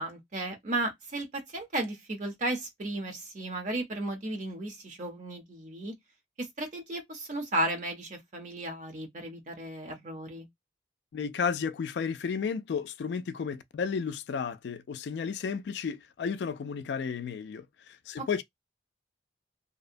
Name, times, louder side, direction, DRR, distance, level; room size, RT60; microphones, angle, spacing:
voice 1, 0.0-5.9 6.4-10.5 18.2-18.4, right 1 dB, 45° right, 0.6 m, -34 dB
voice 2, 11.1-17.7 18.1-18.4, left 6 dB, 70° left, 0.3 m, -32 dB
2.7 x 2.0 x 2.5 m
head